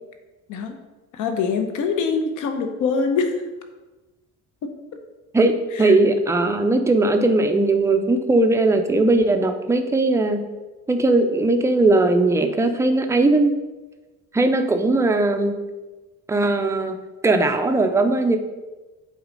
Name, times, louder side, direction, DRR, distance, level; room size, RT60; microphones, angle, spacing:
voice 1, 1.1-3.4 4.6-4.7 5.7-5.9, left 5 dB, 70° left, 6 dB, 1.0 m, -24 dB
voice 2, 5.3-10.4 10.9-13.6 14.3-15.6 16.3-17.0 17.2-18.4, right 2 dB, 10° right, 6 dB, 0.4 m, -19 dB
7.9 x 4.1 x 5.2 m, 1.2 s
cardioid pair, 175°, 32 cm